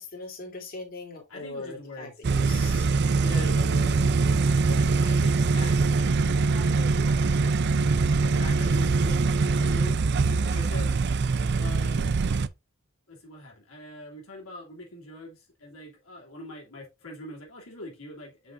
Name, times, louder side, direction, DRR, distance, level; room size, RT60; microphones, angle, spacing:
voice 1, 0.0-2.9 3.3-4.9, left 2 dB, 45° left, 3.1 m, -41 dB
voice 2, 1.3-2.1 3.2-3.5 5.0-7.3 8.2-10.0 10.3-11.0 11.6-12.3 13.1-18.5, left 2 dB, 80° left, 2.9 m, -43 dB
sound 1, 2.2-12.5, right 4 dB, 55° right, 0.5 m, -23 dB
7.7 x 6.2 x 2.5 m
head